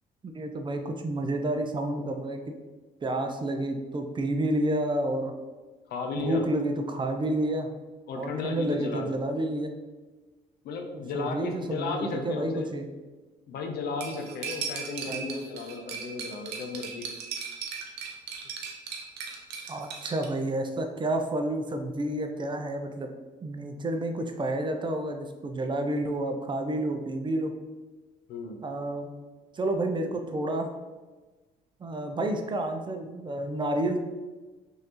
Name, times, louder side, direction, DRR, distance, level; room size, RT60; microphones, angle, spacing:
voice 1, 0.2-2.5 3.0-5.3 6.2-7.7 8.2-9.7 11.1-12.9 15.1-15.2 19.7-23.1 23.4-27.5 28.6-29.1 29.5-30.7 31.8-34.0, right 1 dB, 30° right, 5 dB, 0.4 m, -30 dB
voice 2, 5.9-6.4 8.1-9.2 10.6-12.7 13.5-17.1 28.3-28.6, left 3 dB, 65° left, 4 dB, 0.5 m, -34 dB
Cutlery silverware, 14.0-20.3, right 6 dB, 75° right, 0.6 m, -37 dB
3.1 x 2.7 x 2.9 m, 1.2 s
supercardioid pair, 70°, 17 cm